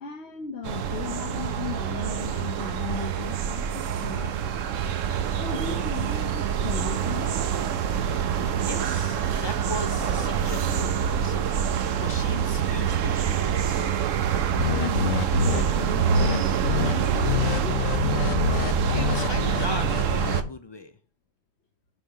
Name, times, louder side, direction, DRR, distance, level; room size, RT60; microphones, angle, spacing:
voice 1, 0.0-4.6 5.2-7.4 14.5-17.8, left 6 dB, 55° left, 1.3 m, -36 dB
sound 1, 0.6-20.4, right 8 dB, 75° right, 1.1 m, -26 dB
voice 2, 8.6-11.5 12.0-13.9 18.9-20.9, left 2 dB, 40° left, 0.3 m, -38 dB
sound 2, 14.6-15.6 16.1-16.4 16.6-16.9 17.2-20.5, left 9 dB, 80° left, 1.0 m, -27 dB
6.4 x 4.9 x 5.6 m
omnidirectional pair, 1.4 m